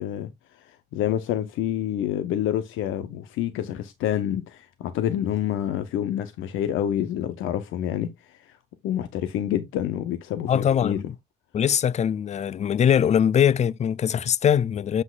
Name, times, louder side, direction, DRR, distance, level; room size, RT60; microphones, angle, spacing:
voice 1, 0.0-8.6 8.8-11.0, left 11 dB, 90° left, 0.8 m, -28 dB
voice 2, 10.5-11.2 11.5-15.0, left 8 dB, 35° left, 0.4 m, -22 dB
7.8 x 6.0 x 2.4 m
cardioid pair, 90°, 20 cm